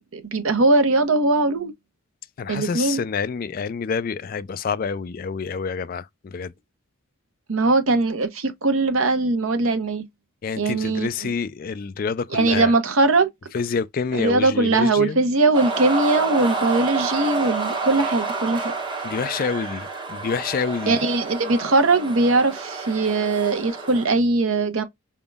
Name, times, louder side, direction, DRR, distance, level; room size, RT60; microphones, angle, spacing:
voice 1, 0.1-1.7 2.5-3.0 7.5-10.0 10.6-11.3 12.3-13.3 14.1-18.7 20.9-24.8, right 3 dB, 75° right, 0.9 m, -20 dB
voice 2, 2.4-6.5 10.4-12.7 13.5-15.2 19.0-21.0, left 5 dB, 40° left, 0.3 m, -27 dB
sound 1, 15.5-24.1, right 4 dB, 20° right, 1.2 m, -29 dB
5.0 x 3.6 x 2.3 m
head